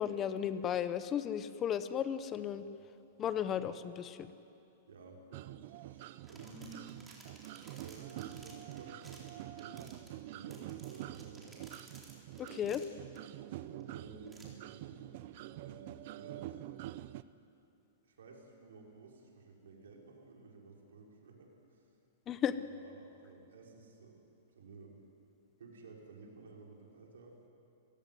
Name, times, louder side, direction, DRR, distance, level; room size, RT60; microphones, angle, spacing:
voice 1, 0.0-2.6 3.2-4.3 12.4-12.8 22.3-22.5, left 9 dB, 20° left, 12 dB, 0.9 m, -34 dB
voice 2, 4.9-6.8 7.7-11.6 12.5-13.0 13.4-15.1 15.6-16.6 17.4-17.5 18.0-21.9 22.7-24.2 24.5-25.0 25.6-27.4, right 3 dB, 90° right, 0 dB, 5.4 m, -54 dB
sound 1, 5.3-17.2, right 14 dB, 50° right, 0.7 m, -46 dB
sound 2, 6.0-13.2 13.8-13.9 14.3-14.5, right 1 dB, 5° right, 4.0 m, -57 dB
30.0 x 16.5 x 9.5 m, 2.8 s
hypercardioid pair, 155°, 0 cm